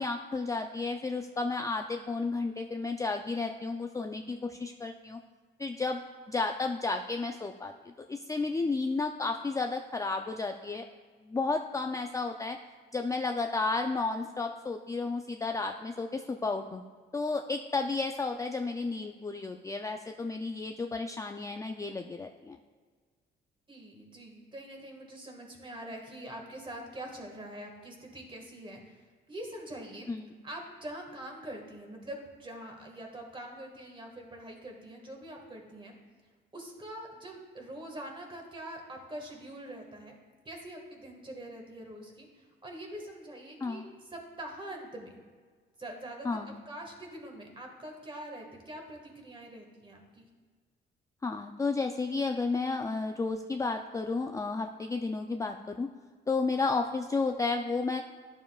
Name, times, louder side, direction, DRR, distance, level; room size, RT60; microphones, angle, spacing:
voice 1, 0.0-5.2 5.6-6.0 6.3-7.7 8.1-10.8 11.2-12.6 12.9-16.8 17.1-22.6 30.1-30.3 43.6-43.9 46.2-46.6 51.2-55.9 56.3-58.0, left 3 dB, 15° left, 4 dB, 0.4 m, -32 dB
voice 2, 23.7-29.0 29.3-30.1 30.4-36.0 36.5-40.1 40.4-45.2 45.8-50.3, right 1 dB, 25° right, 2 dB, 1.7 m, -44 dB
11.0 x 7.1 x 2.4 m, 1.5 s
cardioid pair, 90°, 20 cm